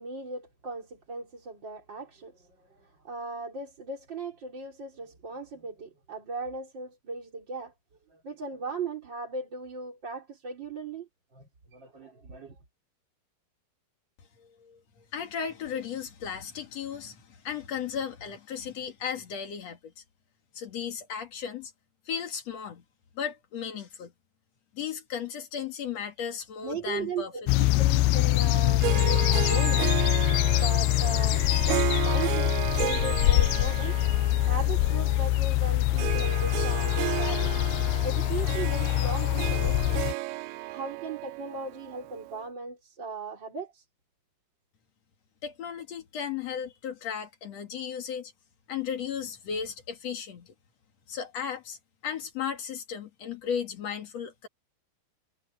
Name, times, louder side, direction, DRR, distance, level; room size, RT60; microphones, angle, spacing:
voice 1, 0.0-7.7 8.1-12.6 26.6-30.2 30.5-37.5 38.0-40.0 40.7-43.8, right 3 dB, 30° right, 3.9 m, -38 dB
voice 2, 14.4-14.8 15.1-20.0 20.5-21.7 22.1-22.8 23.1-24.1 24.7-27.3 31.7-32.1 45.4-48.3 48.7-50.5 51.1-51.8 52.0-54.5, left 7 dB, 50° left, 2.6 m, -35 dB
sound 1, 27.5-40.1, left 17 dB, 80° left, 2.5 m, -24 dB
Harp, 28.8-42.4, right 17 dB, 80° right, 2.4 m, -34 dB
omnidirectional pair, 4.6 m